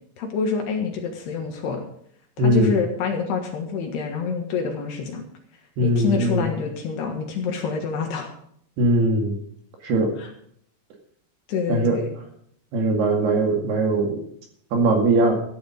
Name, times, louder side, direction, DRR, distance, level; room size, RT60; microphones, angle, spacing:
voice 1, 0.2-1.8 2.4-5.2 5.8-8.3 10.2-10.3 11.5-12.1, left 5 dB, 65° left, 3 dB, 3.2 m, -27 dB
voice 2, 2.4-2.7 5.8-6.4 8.8-9.4 9.8-10.1 11.7-12.0 12.7-14.2 14.7-15.3, right 1 dB, 60° right, 2 dB, 3.8 m, -20 dB
14.0 x 10.5 x 5.3 m, 0.66 s
omnidirectional pair, 5.7 m